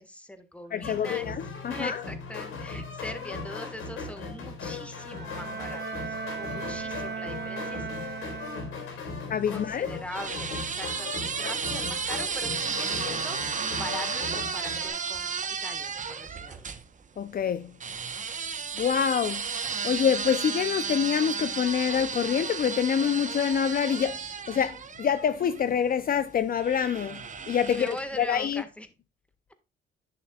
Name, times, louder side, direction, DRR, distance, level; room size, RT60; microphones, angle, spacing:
voice 1, 0.0-1.4 1.7-8.2 9.5-13.4 13.7-15.3 15.6-16.7 27.6-28.9, left 1 dB, 5° left, 1.6 m, -41 dB
voice 2, 0.7-2.0 9.3-9.9 17.2-17.7 18.8-19.5 19.8-28.6, left 8 dB, 45° left, 0.6 m, -26 dB
sound 1, 0.8-14.9, left 4 dB, 85° left, 3.8 m, -38 dB
Bowed string instrument, 4.9-9.0, right 6 dB, 55° right, 1.8 m, -37 dB
sound 2, 9.4-16.8 17.8-25.7 26.6-28.2, right 6 dB, 40° right, 1.0 m, -33 dB
10.5 x 6.6 x 2.3 m
cardioid pair, 90°, 20 cm